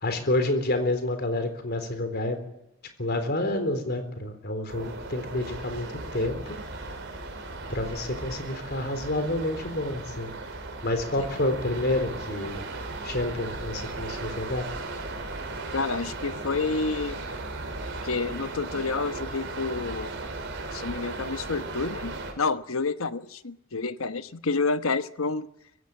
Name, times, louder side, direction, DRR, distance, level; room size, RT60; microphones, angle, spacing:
voice 1, 0.0-2.4 3.0-6.6 7.7-10.3 10.8-12.6 13.0-14.7, left 1 dB, 50° left, 8 dB, 4.0 m, -29 dB
sound 1, 4.7-22.3, right 2 dB, 60° right, 4.5 m, -36 dB
voice 2, 15.7-17.2 18.0-20.1 20.7-25.5, left 4 dB, 80° left, 11 dB, 1.1 m, -29 dB
23.5 x 15.5 x 9.0 m, 0.84 s
head